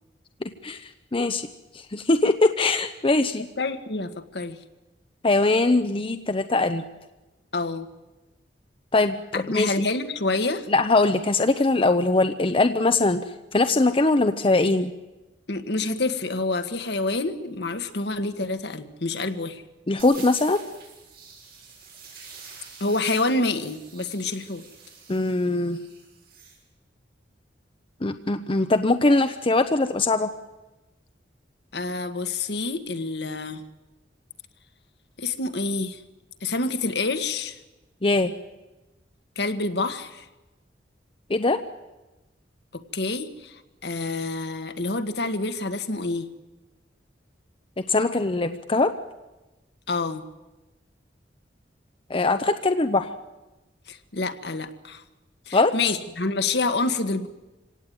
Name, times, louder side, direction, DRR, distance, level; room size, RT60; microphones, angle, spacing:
voice 1, 0.4-1.5 1.7-3.5 5.2-6.8 8.9-9.2 9.5-9.7 10.7-13.2 13.5-14.9 19.9-20.6 25.1-25.8 28.0-30.3 38.0-38.3 41.3-41.6 47.8-48.9 52.1-53.1 55.5-55.7, left 2 dB, 30° left, 9 dB, 0.7 m, -21 dB
voice 2, 3.6-4.6 7.5-7.9 9.3-10.7 15.5-19.6 22.8-24.6 31.7-33.6 35.2-36.0 36.4-37.6 39.3-40.3 42.7-46.3 49.9-50.2 53.9-55.0 55.5-57.3, left 3 dB, 65° left, 9 dB, 1.5 m, -27 dB
sound 1, 20.0-26.6, right 5 dB, 55° right, 6.9 m, -46 dB
25.5 x 17.5 x 9.2 m, 1.1 s
head